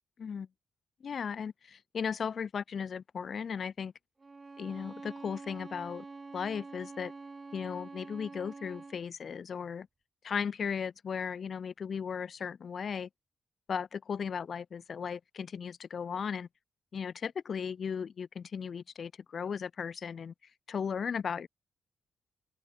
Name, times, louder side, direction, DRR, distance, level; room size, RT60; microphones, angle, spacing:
voice 1, 1.0-3.9 4.6-6.1 6.3-7.1 7.5-9.9 10.2-13.1 13.7-16.5 16.9-20.3 20.7-21.5, left 6 dB, 55° left, 0.3 m, -36 dB
Bowed string instrument, 4.2-9.1, right 3 dB, 35° right, 0.9 m, -46 dB
open air
supercardioid pair, 55°, 0 cm